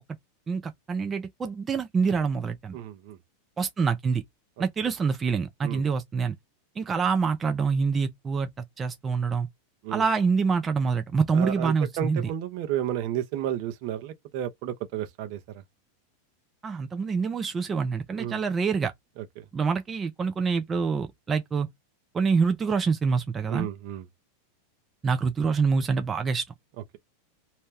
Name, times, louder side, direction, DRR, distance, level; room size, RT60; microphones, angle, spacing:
voice 1, 0.5-2.8 3.6-4.2 4.6-6.3 6.8-8.5 8.8-9.5 9.9-12.3 16.6-18.9 19.5-21.7 22.1-23.7 25.0-26.4, right 5 dB, 25° right, 0.5 m, -26 dB
voice 2, 2.7-3.2 5.6-5.8 9.8-10.0 11.3-15.4 18.2-18.4 23.5-24.0, right 11 dB, 60° right, 0.8 m, -32 dB
2.7 x 2.2 x 3.3 m
hypercardioid pair, 100°, 0 cm